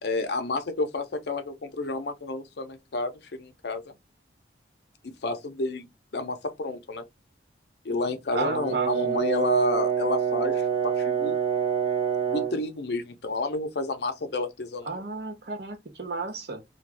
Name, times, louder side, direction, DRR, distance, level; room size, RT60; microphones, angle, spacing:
voice 1, 0.0-3.9 5.0-5.9 6.1-7.0 7.8-11.4 12.3-15.0, left 2 dB, 60° left, 0.6 m, -30 dB
voice 2, 8.3-8.9 14.8-16.6, right 3 dB, 60° right, 0.7 m, -32 dB
Brass instrument, 8.4-12.6, right 7 dB, 30° right, 0.9 m, -26 dB
2.5 x 2.3 x 3.2 m
head